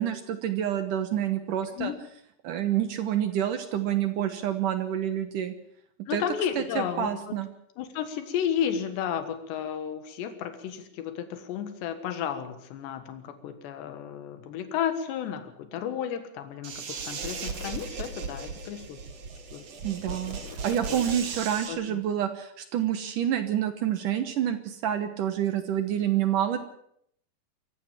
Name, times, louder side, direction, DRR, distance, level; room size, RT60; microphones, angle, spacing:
voice 1, 0.0-1.9 2.4-5.5 6.1-6.2 6.6-7.5 19.8-20.4 20.6-26.6, right 10 dB, 65° right, 10 dB, 2.3 m, -28 dB
voice 2, 6.1-7.4 7.8-19.0 19.5-19.6 20.1-20.2 20.4-20.6 20.9-21.2 21.7-22.0, left 9 dB, 90° left, 9 dB, 3.7 m, -33 dB
sound 1, 16.6-21.7, right 5 dB, 45° right, 2.7 m, -37 dB
23.5 x 15.0 x 7.5 m, 0.70 s
omnidirectional pair, 4.8 m